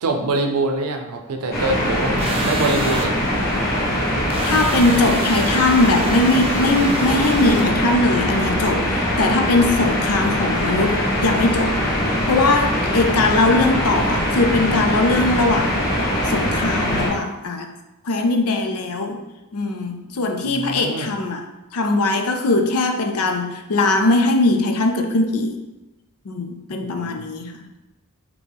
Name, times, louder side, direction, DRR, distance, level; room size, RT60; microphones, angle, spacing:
voice 1, 0.0-3.1 20.4-21.1 26.7-27.2, right 2 dB, 80° right, 4 dB, 0.5 m, -24 dB
sound 1, 1.5-17.1, equal, 45° left, 1.3 m, -22 dB
sound 2, 2.2-3.1 4.3-7.7, right 3 dB, 25° right, 0.4 m, -29 dB
voice 2, 4.4-11.8 12.3-15.8 16.2-17.7 18.0-19.2 19.5-21.4 21.7-25.6 26.3-27.7, left 2 dB, 75° left, 5 dB, 0.5 m, -20 dB
4.2 x 2.9 x 3.4 m, 1.0 s
head